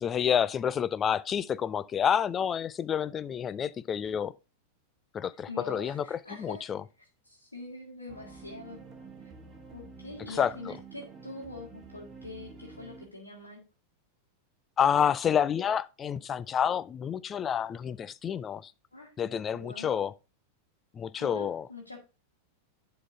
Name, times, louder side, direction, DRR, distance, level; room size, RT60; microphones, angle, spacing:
voice 1, 0.0-4.3 5.1-6.8 10.4-10.5 14.8-18.7 19.2-20.1 20.9-21.7, left 8 dB, 25° left, 0.4 m, -29 dB
voice 2, 5.5-6.8 7.3-8.8 9.2-9.3 9.7-13.6 18.9-19.1 19.5-20.0 21.2-22.0, left 2 dB, 80° left, 1.8 m, -44 dB
sound 1, 8.1-13.1, right 4 dB, 15° right, 1.6 m, -49 dB
11.0 x 3.9 x 3.7 m
figure-of-eight pair, 90°, 0 cm